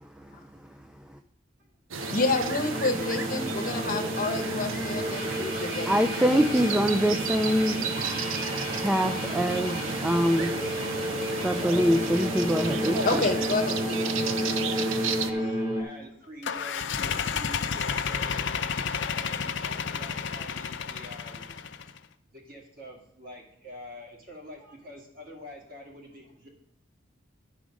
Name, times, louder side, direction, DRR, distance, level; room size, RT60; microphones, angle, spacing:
sound 1, 1.9-15.3, right 5 dB, 80° right, 0.6 m, -34 dB
sound 2, 2.0-15.8, equal, 30° right, 2.1 m, -31 dB
voice 1, 2.1-6.4 13.1-14.2, left 3 dB, 40° left, 7 dB, 0.8 m, -29 dB
voice 2, 5.9-7.9 8.7-10.7 11.4-12.9, equal, 5° right, 6 dB, 0.3 m, -24 dB
voice 3, 12.8-18.5 19.1-21.5 22.3-26.5, equal, 45° right, 0 dB, 2.0 m, -42 dB
sound 3, 16.4-22.0, left 6 dB, 60° left, 0.5 m, -31 dB
11.0 x 4.9 x 5.1 m, 0.75 s
head